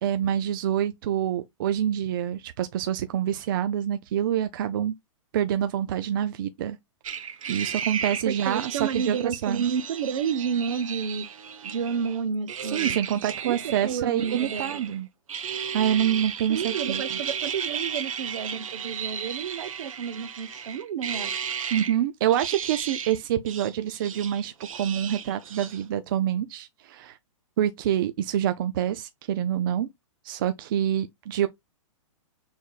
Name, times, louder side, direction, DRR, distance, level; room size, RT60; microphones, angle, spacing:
voice 1, 0.0-4.9 5.3-6.8 7.5-9.7 12.7-15.1 15.7-17.2 21.7-27.2 27.6-29.9 30.2-31.5, right 10 dB, 40° right, 0.4 m, -26 dB
sound 1, 7.0-12.2 12.5-15.0 15.3-22.0 22.3-23.2 23.5-25.8, right 7 dB, 80° right, 1.1 m, -34 dB
voice 2, 8.2-11.2 11.6-13.0 13.4-13.6 13.8-14.9 16.5-21.3, right 7 dB, 65° right, 0.9 m, -30 dB
6.3 x 3.6 x 2.3 m
hypercardioid pair, 160°, 17 cm